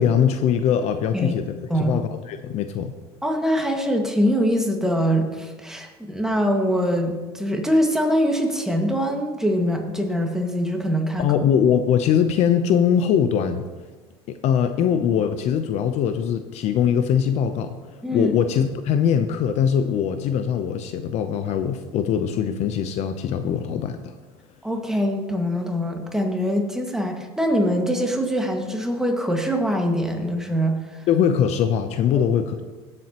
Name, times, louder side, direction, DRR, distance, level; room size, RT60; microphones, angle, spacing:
voice 1, 0.0-2.9 11.2-13.6 14.3-17.7 18.1-24.0 31.1-32.6, left 8 dB, 55° left, 9 dB, 0.7 m, -22 dB
voice 2, 3.2-11.3 18.0-18.3 24.6-31.0, equal, 5° right, 2 dB, 1.8 m, -23 dB
16.5 x 7.7 x 3.0 m, 1.3 s
supercardioid pair, 95°, 14 cm